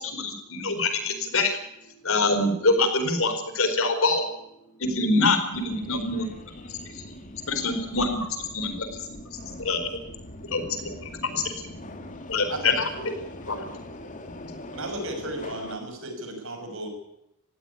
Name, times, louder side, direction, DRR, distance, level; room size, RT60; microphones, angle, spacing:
voice 1, 0.0-1.6 2.0-4.2 4.8-6.2 6.7-7.0 7.5-9.9 10.5-11.4 12.3-12.9 13.5-13.6, left 3 dB, 65° left, 7 dB, 4.3 m, -25 dB
Subway metro underground, 5.5-15.8, left 1 dB, 35° left, 2.2 m, -42 dB
voice 2, 6.7-7.5 9.4-9.6 13.9-14.7, left 1 dB, 85° left, 6 dB, 3.8 m, -54 dB
voice 3, 14.7-16.9, right 1 dB, 60° right, 5 dB, 6.3 m, -34 dB
20.0 x 15.5 x 9.9 m, 0.83 s
head